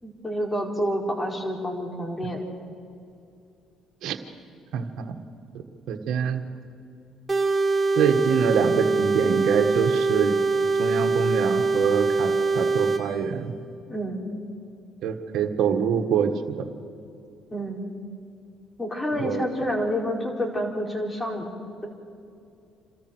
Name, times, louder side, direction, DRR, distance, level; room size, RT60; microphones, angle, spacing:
voice 1, 0.0-2.5 13.9-14.2 17.5-17.8 18.8-21.5, equal, 20° left, 1 dB, 4.9 m, -28 dB
voice 2, 4.7-5.2 5.9-6.4 7.9-10.3 10.8-13.5 15.0-16.3 16.6-16.7 19.2-19.6, right 7 dB, 70° right, 5 dB, 1.6 m, -25 dB
sound 1, 7.3-13.0, right 3 dB, 25° right, 2.7 m, -23 dB
27.5 x 13.5 x 8.0 m, 2.6 s
supercardioid pair, 65°, 0 cm